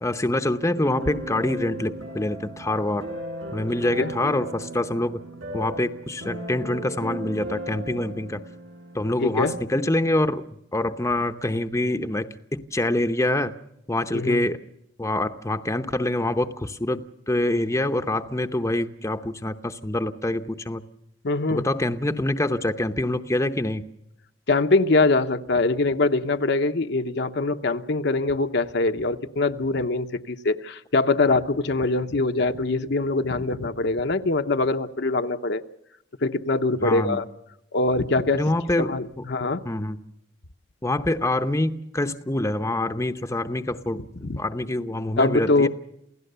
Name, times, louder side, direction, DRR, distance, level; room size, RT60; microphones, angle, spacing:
voice 1, 0.0-3.1 3.5-5.2 5.5-8.4 8.9-10.4 10.7-13.5 13.9-14.6 15.0-20.8 21.5-23.8 36.8-37.2 38.3-39.2 39.6-40.0 40.8-45.7, left 1 dB, 15° left, 8 dB, 0.8 m, -25 dB
sound 1, 0.7-9.5, right 1 dB, 85° right, 7.5 m, -36 dB
voice 2, 9.2-9.6 14.1-14.5 21.2-21.6 24.5-35.6 36.2-37.2 37.7-38.4 38.8-39.6 44.2-44.4 45.2-45.7, left 3 dB, 65° left, 7 dB, 0.9 m, -23 dB
28.5 x 16.5 x 6.8 m, 0.80 s
head